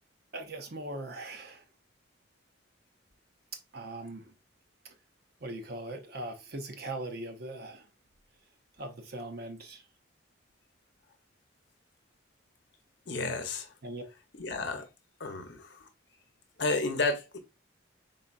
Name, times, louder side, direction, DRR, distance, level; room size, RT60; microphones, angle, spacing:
voice 1, 0.3-1.6 3.7-4.3 5.4-7.9 8.8-9.8 13.8-14.0, right 2 dB, 50° right, 0.7 m, -40 dB
voice 2, 13.1-13.7 14.3-14.9 15.2-15.9 16.6-17.4, left 3 dB, 60° left, 0.8 m, -32 dB
4.2 x 4.0 x 2.4 m
head